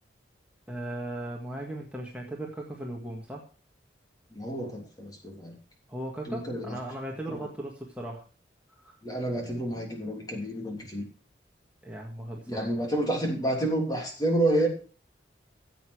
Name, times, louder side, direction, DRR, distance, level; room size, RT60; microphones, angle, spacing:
voice 1, 0.7-3.4 5.9-8.2 8.8-9.0 11.8-12.7, right 1 dB, 5° right, -2 dB, 1.7 m, -37 dB
voice 2, 4.3-5.6 6.3-6.8 7.2-7.4 9.0-11.1 12.5-14.7, right 1 dB, 20° left, 1 dB, 3.1 m, -29 dB
15.0 x 8.3 x 4.9 m, 0.38 s
head